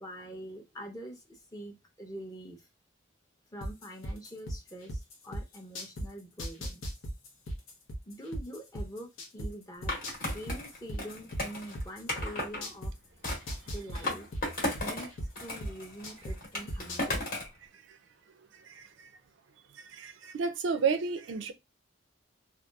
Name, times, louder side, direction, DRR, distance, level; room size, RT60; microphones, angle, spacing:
voice 1, 0.0-2.7 3.5-7.0 8.1-10.0 10.2-12.9 13.7-14.3 14.8-15.1 15.4-17.2, right 1 dB, 20° left, 0.5 m, -45 dB
sound 1, 3.6-6.1 6.4-9.5 9.8-12.9 13.2-16.3 16.7-17.2, equal, 90° left, 0.7 m, -36 dB
Skateboard, 9.9-12.6 13.2-15.1 15.3-17.6, left 1 dB, 45° left, 0.9 m, -35 dB
voice 2, 18.7-19.1 19.9-21.5, right 5 dB, 65° right, 0.4 m, -31 dB
2.8 x 2.2 x 2.2 m
head